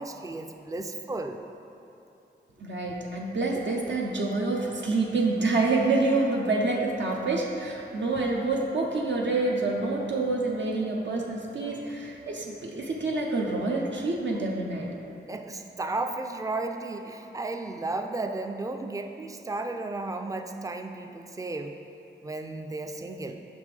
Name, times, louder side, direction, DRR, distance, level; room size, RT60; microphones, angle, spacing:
voice 1, 0.0-1.4 15.3-21.8 22.2-23.4, right 2 dB, 20° right, 6 dB, 0.3 m, -34 dB
voice 2, 2.6-15.0, right 3 dB, 75° right, -1 dB, 0.6 m, -27 dB
5.9 x 5.2 x 3.3 m, 2.8 s
wide cardioid pair, 85°, 19 cm